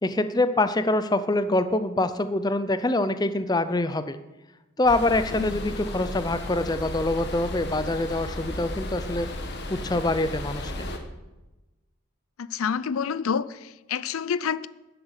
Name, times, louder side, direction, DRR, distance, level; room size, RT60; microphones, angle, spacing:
voice 1, 0.0-4.2 4.8-9.3 9.7-10.9, left 2 dB, 20° left, 0.5 m, -25 dB
sound 1, 4.9-11.0, left 1 dB, 50° left, 1.6 m, -34 dB
voice 2, 12.4-14.7, left 6 dB, 75° left, 0.5 m, -28 dB
11.0 x 7.9 x 8.0 m
head